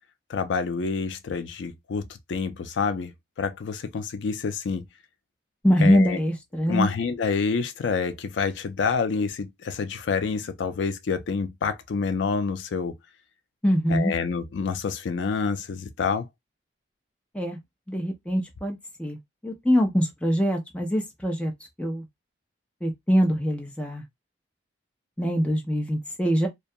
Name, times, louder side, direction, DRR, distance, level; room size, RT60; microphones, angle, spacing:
voice 1, 0.3-2.0 2.3-3.1 3.4-4.8 5.8-6.2 6.7-12.9 13.9-16.3, left 5 dB, 80° left, 0.4 m, -27 dB
voice 2, 5.6-6.9 13.6-14.1 17.3-17.6 17.9-21.5 21.8-22.0 22.8-24.0 25.2-26.5, equal, 5° left, 0.5 m, -24 dB
2.3 x 2.2 x 2.6 m
head